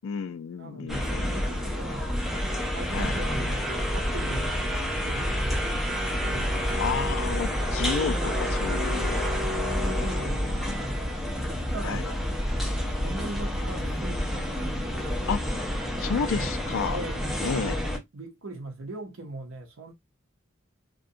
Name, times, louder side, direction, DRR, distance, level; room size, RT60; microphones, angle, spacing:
voice 1, 0.0-1.3 2.9-3.1 6.8-8.1 8.6-9.3 10.2-10.7 11.8-12.1 15.3-15.4 16.0-17.0 17.4-17.8, left 6 dB, 65° left, 0.3 m, -31 dB
voice 2, 0.5-2.2 2.7-5.4 6.3-6.8 8.0-8.6 9.2-9.4 9.8-11.0 11.5-12.1 13.0-14.8 16.0-16.6 16.9-17.8 18.1-19.9, right 2 dB, 70° right, 0.8 m, -40 dB
sound 1, 0.9-18.0, equal, ahead, 0.5 m, -28 dB
Wind instrument woodwind instrument, 5.9-11.0, right 5 dB, 35° right, 0.8 m, -47 dB
2.5 x 2.2 x 2.6 m
head